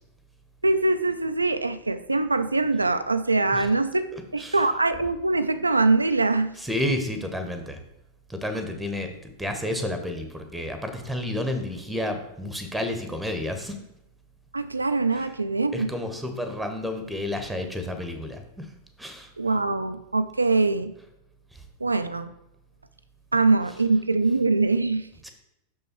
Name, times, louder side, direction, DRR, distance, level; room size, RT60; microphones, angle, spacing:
voice 1, 0.6-4.1 4.3-6.5 14.5-15.9 19.4-20.9 21.8-22.3 23.3-25.1, right 3 dB, 80° right, 10 dB, 0.3 m, -23 dB
voice 2, 4.1-4.6 6.6-7.8 8.3-13.8 15.1-15.2 15.7-18.7 19.0-19.3 25.2-25.3, left 1 dB, 5° right, 6 dB, 1.0 m, -31 dB
6.3 x 5.5 x 4.3 m, 0.87 s
figure-of-eight pair, 90°, 0 cm